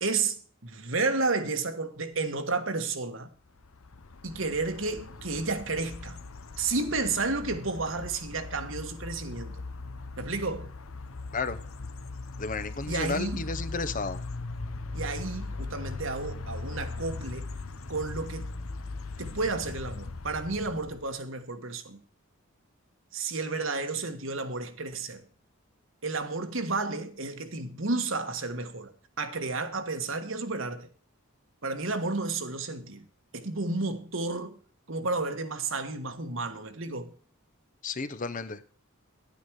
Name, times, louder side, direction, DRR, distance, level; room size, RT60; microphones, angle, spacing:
voice 1, 0.0-3.3 4.2-6.2 6.6-9.5 10.2-10.7 12.9-13.4 14.9-17.5 17.9-18.5 19.2-22.0 23.1-25.2 26.0-28.9 29.2-30.9 31.6-33.0 33.3-34.6 34.9-37.1, right 3 dB, 65° right, 1.5 m, -31 dB
sound 1, 3.6-21.2, left 3 dB, 80° left, 1.0 m, -39 dB
voice 2, 12.4-14.2 37.8-38.6, left 3 dB, 40° left, 0.8 m, -32 dB
10.5 x 9.5 x 4.7 m
head